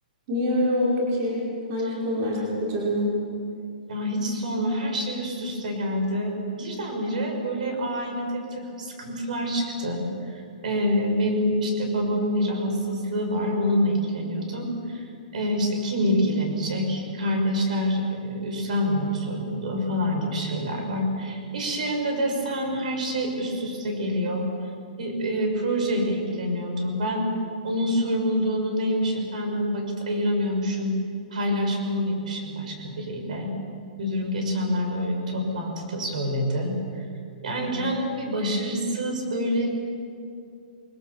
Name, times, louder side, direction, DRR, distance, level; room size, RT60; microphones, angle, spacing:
voice 1, 0.3-3.1 37.6-37.8, left 1 dB, 25° right, -5 dB, 5.3 m, -25 dB
voice 2, 3.9-15.1 15.3-24.5 25.0-27.3 27.6-31.0 31.3-33.5 34.0-37.0 37.4-39.7, equal, 55° right, 3 dB, 6.6 m, -26 dB
28.0 x 22.0 x 7.4 m, 2.4 s
hypercardioid pair, 175°, 5 cm